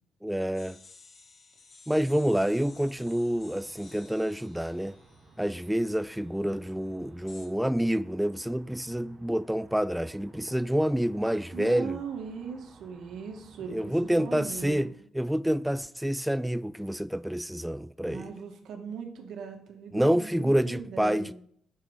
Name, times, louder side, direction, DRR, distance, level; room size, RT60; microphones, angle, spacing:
voice 1, 0.2-0.8 1.9-5.0 5.4-12.0 13.7-18.3 19.9-21.3, equal, 5° right, 0.3 m, -28 dB
sound 1, 0.5-6.2 7.3-7.5, left 3 dB, 45° left, 3.4 m, -55 dB
sound 2, 2.6-14.9, right 3 dB, 50° right, 2.5 m, -56 dB
voice 2, 11.5-14.9 18.0-21.3, right 6 dB, 75° right, 2.0 m, -39 dB
9.6 x 7.5 x 5.6 m
cardioid pair, 90°, 0 cm